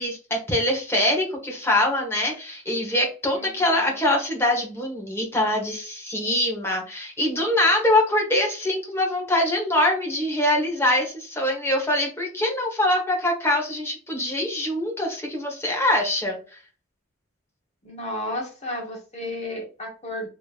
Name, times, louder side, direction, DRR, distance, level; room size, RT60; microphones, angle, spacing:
voice 1, 0.0-16.4, left 1 dB, 10° left, -1 dB, 1.2 m, -23 dB
voice 2, 17.8-20.3, left 1 dB, 30° left, 0 dB, 1.1 m, -32 dB
5.1 x 3.0 x 2.5 m, 0.36 s
head